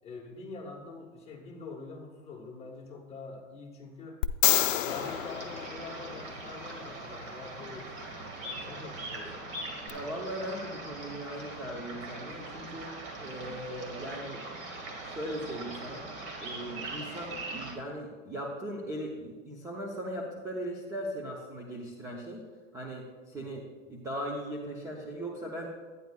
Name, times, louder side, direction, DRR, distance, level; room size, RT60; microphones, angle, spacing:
voice 1, 0.0-4.2 4.5-9.5 23.3-23.6, left 4 dB, 15° left, -1 dB, 1.3 m, -45 dB
sound 1, 4.2-6.5 9.9-10.0, left 13 dB, 80° left, 0.6 m, -28 dB
sound 2, 4.9-17.8, right 2 dB, 35° right, 1.7 m, -41 dB
voice 2, 9.9-14.4 15.1-16.1 16.4-22.4 22.7-23.6 23.9-25.7, equal, 10° right, -2 dB, 0.7 m, -38 dB
12.0 x 9.4 x 2.3 m, 1.4 s
hypercardioid pair, 135°, 39 cm